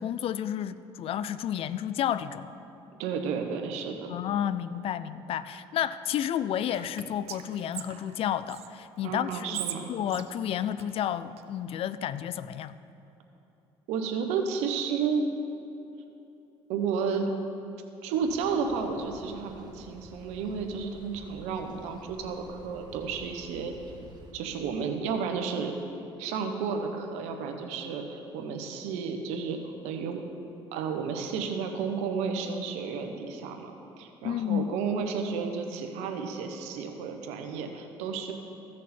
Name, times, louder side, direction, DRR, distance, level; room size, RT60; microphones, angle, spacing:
voice 1, 0.0-2.5 4.1-9.6 9.9-12.8 34.2-34.7, left 10 dB, 55° left, 15 dB, 0.4 m, -31 dB
voice 2, 3.0-4.2 9.0-9.9 13.9-15.2 16.7-17.3 18.0-23.7 24.3-25.7 26.2-30.2 30.7-33.7 34.0-38.3, right 5 dB, 85° right, 5 dB, 1.0 m, -32 dB
Whispering, 6.7-8.7 9.3-11.4, right 11 dB, 65° right, 0.6 m, -41 dB
sound 1, 18.2-24.3, right 1 dB, 40° right, 1.6 m, -51 dB
15.5 x 6.4 x 4.3 m, 2.8 s
supercardioid pair, 80°, 11 cm